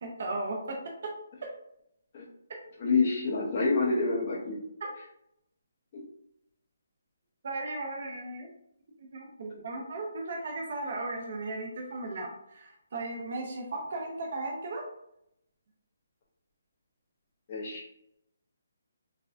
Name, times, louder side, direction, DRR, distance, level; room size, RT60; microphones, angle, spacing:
voice 1, 0.0-1.1 4.8-4.9 7.4-8.5 9.0-14.8, right 2 dB, 45° right, 0 dB, 0.6 m, -36 dB
voice 2, 2.8-4.6 5.9-6.0 17.5-17.8, left 4 dB, 30° left, -8 dB, 0.9 m, -27 dB
4.1 x 2.2 x 2.6 m, 0.77 s
hypercardioid pair, 175°, 0 cm